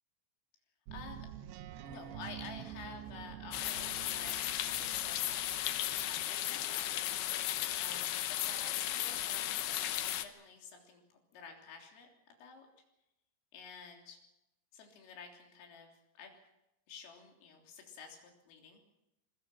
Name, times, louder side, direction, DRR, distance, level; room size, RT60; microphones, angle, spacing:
voice 1, 0.9-1.3 1.8-5.5 6.0-7.0 7.8-12.7 13.5-14.2 14.7-16.4 16.9-18.2 18.5-18.8, left 5 dB, 90° left, 2 dB, 6.0 m, -51 dB
sound 1, 0.9-6.1, right 11 dB, 75° right, 2.7 m, -48 dB
sound 2, 3.5-10.3, left 12 dB, 70° left, 2.6 m, -35 dB
25.5 x 22.0 x 6.0 m, 0.90 s
omnidirectional pair, 5.7 m